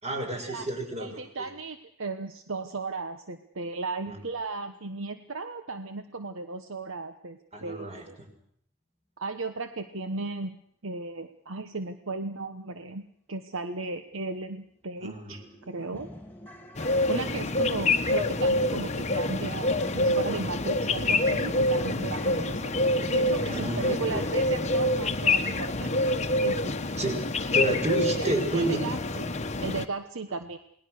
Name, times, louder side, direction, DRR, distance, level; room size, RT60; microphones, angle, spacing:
voice 1, 0.0-1.5 4.1-4.2 7.5-8.0 15.0-15.4 23.5-24.2 27.0-27.2 27.5-28.8, right 2 dB, 30° right, 4 dB, 5.9 m, -30 dB
voice 2, 1.0-8.2 9.2-10.6 10.8-16.2 17.1-22.8 23.1-26.0 26.4-26.8 28.2-30.6, right 3 dB, 65° right, 8 dB, 1.1 m, -36 dB
sound 1, 14.4-14.5 14.9-15.0 15.3-24.4, left 1 dB, 10° left, 2.9 m, -46 dB
sound 2, 16.8-29.9, left 2 dB, 30° left, 1.2 m, -26 dB
28.5 x 19.5 x 6.6 m, 0.68 s
head